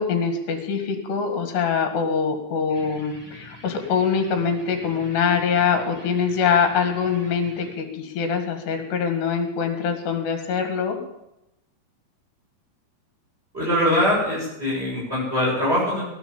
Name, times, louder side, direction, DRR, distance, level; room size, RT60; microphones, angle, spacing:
voice 1, 0.0-11.0, left 6 dB, 70° left, 5 dB, 4.0 m, -24 dB
sound 1, 2.7-7.7, left 1 dB, 30° left, 8.6 m, -45 dB
voice 2, 13.5-16.0, left 1 dB, 15° right, -6 dB, 7.5 m, -22 dB
17.5 x 10.5 x 7.2 m, 0.91 s
omnidirectional pair, 5.1 m